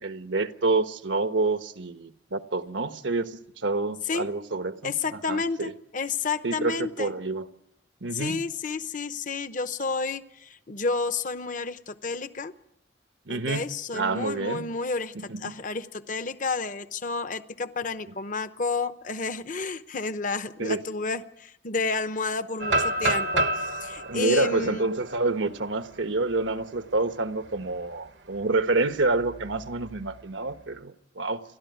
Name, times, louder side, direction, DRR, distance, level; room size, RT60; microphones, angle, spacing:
voice 1, 0.0-4.9 5.3-5.7 6.4-7.5 8.0-8.4 13.3-13.6 13.9-14.7 15.1-15.5 20.6-20.8 24.1-31.4, right 3 dB, 80° right, 1.2 m, -28 dB
voice 2, 4.8-7.1 8.1-12.5 13.3-24.9, left 4 dB, 45° left, 0.9 m, -31 dB
sound 1, 22.6-26.5 26.9-27.0 27.5-27.8 29.2-30.0, right 1 dB, 65° right, 1.0 m, -29 dB
30.0 x 12.5 x 9.4 m
head